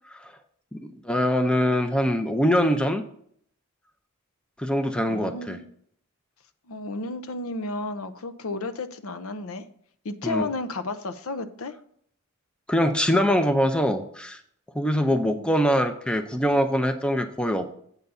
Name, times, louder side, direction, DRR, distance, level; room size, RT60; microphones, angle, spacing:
voice 1, 1.0-3.0 4.6-5.6 10.2-10.5 12.7-14.4 14.7-17.7, equal, 5° left, 7 dB, 0.5 m, -23 dB
voice 2, 5.1-5.7 6.7-9.7 10.0-11.8 15.1-15.5, left 2 dB, 70° left, 11 dB, 0.7 m, -33 dB
8.1 x 4.0 x 6.8 m, 0.64 s
head